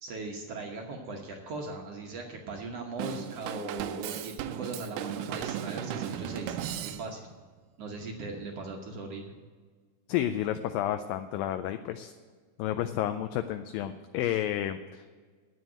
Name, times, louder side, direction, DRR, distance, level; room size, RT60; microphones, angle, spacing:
voice 1, 0.0-7.2 7.8-9.3, right 3 dB, 65° right, 1 dB, 1.6 m, -39 dB
Drum kit / Drum, 3.0-7.4, right 10 dB, 85° right, 1.8 m, -36 dB
voice 2, 10.1-12.1 12.6-15.0, left 11 dB, 80° left, 9 dB, 2.1 m, -31 dB
10.0 x 7.8 x 9.1 m, 1.5 s
omnidirectional pair, 4.3 m